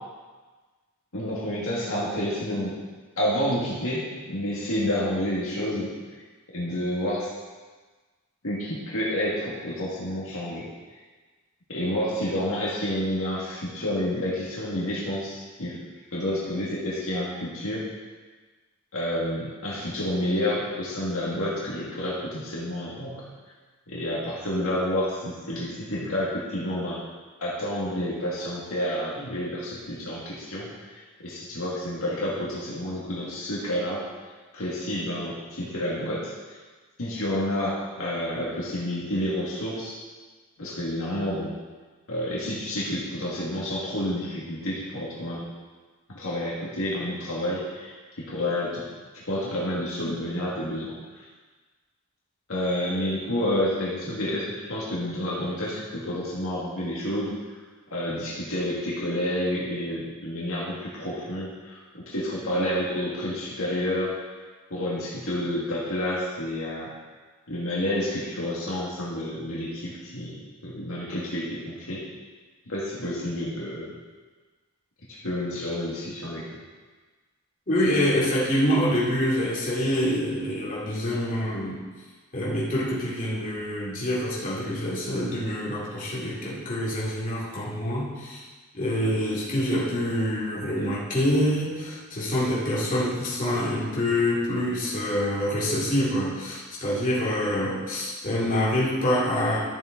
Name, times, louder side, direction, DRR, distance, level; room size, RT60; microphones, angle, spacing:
voice 1, 1.1-2.7 3.2-5.9 6.5-7.3 8.4-10.7 11.7-15.8 16.1-17.8 18.9-23.3 23.9-27.0 27.4-34.0 34.5-36.3 37.0-40.0 40.6-41.6 42.1-45.5 46.1-48.8 49.1-51.2 52.5-57.3 57.9-64.1 64.7-66.9 67.5-72.0 72.7-74.0 75.1-76.5, left 1 dB, 65° left, -6 dB, 1.9 m, -29 dB
voice 2, 77.7-81.8 82.3-88.4 88.7-99.6, equal, 35° left, -7 dB, 2.6 m, -26 dB
12.0 x 6.9 x 3.9 m, 1.4 s
head